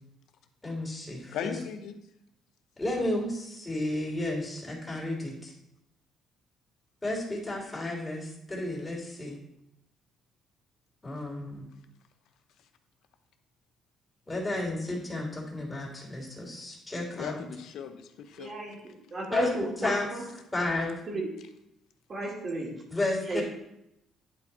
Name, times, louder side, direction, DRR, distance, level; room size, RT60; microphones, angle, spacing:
voice 1, 0.6-1.5 2.8-5.5 7.0-9.4 11.0-11.6 14.3-17.4 19.3-19.5 19.8-20.1 20.5-20.9 22.9-23.4, left 2 dB, 15° left, -2 dB, 3.2 m, -32 dB
voice 2, 1.3-1.9 17.1-18.5, left 8 dB, 75° left, 8 dB, 0.8 m, -37 dB
voice 3, 18.4-18.8 19.1-20.2 21.1-21.3 22.1-22.8 23.2-23.4, right 2 dB, 40° right, -3 dB, 2.3 m, -33 dB
10.5 x 4.6 x 4.2 m, 0.82 s
cardioid pair, 100°, 0 cm